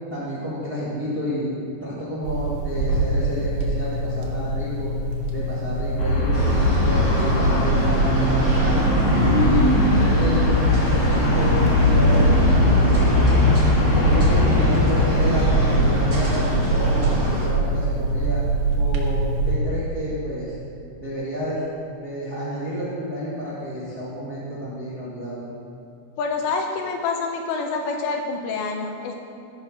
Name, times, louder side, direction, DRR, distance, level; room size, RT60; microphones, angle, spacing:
voice 1, 0.1-1.5 1.8-4.9 5.3-6.4 6.8-8.8 9.2-11.6 11.9-13.5 14.1-18.4 18.8-20.5 21.0-21.6 22.0-25.4, equal, 60° right, -9 dB, 1.0 m, -30 dB
sound 1, 2.2-19.6, right 2 dB, 80° right, 3.7 m, -24 dB
Traffic noise roadway noise, 6.0-15.8, left 2 dB, 55° left, 2.9 m, -21 dB
sound 2, 6.3-17.4, right 1 dB, 35° right, 1.7 m, -24 dB
voice 2, 26.2-29.2, left 4 dB, 75° left, 3 dB, 2.8 m, -27 dB
15.5 x 6.0 x 6.2 m, 2.6 s
omnidirectional pair, 5.5 m